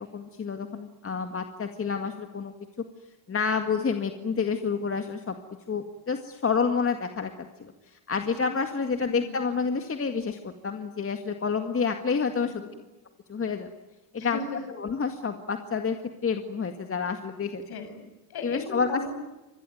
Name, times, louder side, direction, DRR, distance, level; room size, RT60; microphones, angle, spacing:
voice 1, 0.0-2.5 3.3-5.3 5.7-7.3 7.6-12.5 13.3-13.7 14.1-14.4 14.8-16.0 16.2-17.6 18.4-19.0, left 5 dB, 25° left, 6 dB, 2.0 m, -29 dB
voice 2, 9.0-9.4 12.4-12.7 14.2-14.6 17.7-19.1, left 3 dB, 50° left, 8 dB, 6.9 m, -37 dB
26.5 x 21.0 x 9.4 m, 1.1 s
supercardioid pair, 105°, 49 cm